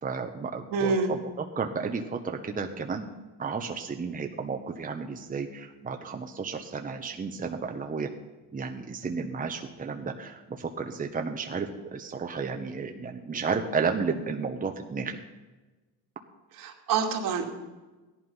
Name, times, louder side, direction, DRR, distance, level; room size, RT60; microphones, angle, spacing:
voice 1, 0.0-3.1 3.4-8.1 8.5-15.2, right 5 dB, 20° right, 4 dB, 1.2 m, -32 dB
voice 2, 0.7-1.1 16.6-17.5, right 5 dB, 65° right, 3 dB, 2.5 m, -27 dB
16.0 x 11.0 x 5.6 m, 1.2 s
cardioid pair, 100°, 36 cm